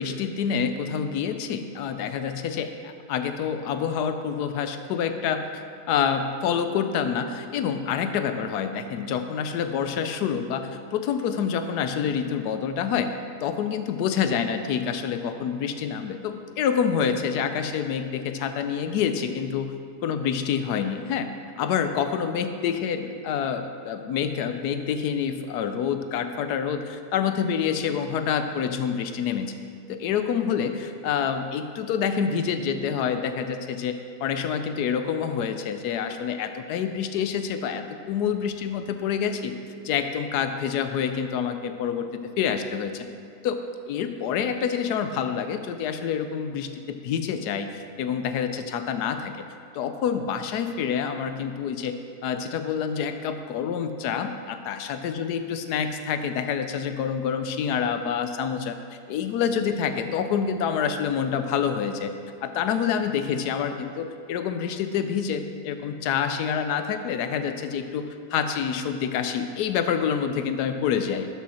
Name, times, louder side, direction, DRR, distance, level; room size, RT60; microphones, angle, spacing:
voice 1, 0.0-5.4 5.9-13.1 13.4-19.7 20.0-21.3 21.6-29.6 29.9-39.5 39.8-42.1 42.4-43.0 43.4-43.6 43.9-49.5 49.7-51.9 52.2-62.1 62.4-71.3, left 7 dB, 75° left, 8 dB, 1.2 m, -27 dB
12.5 x 5.6 x 4.2 m, 2.3 s
omnidirectional pair, 1.8 m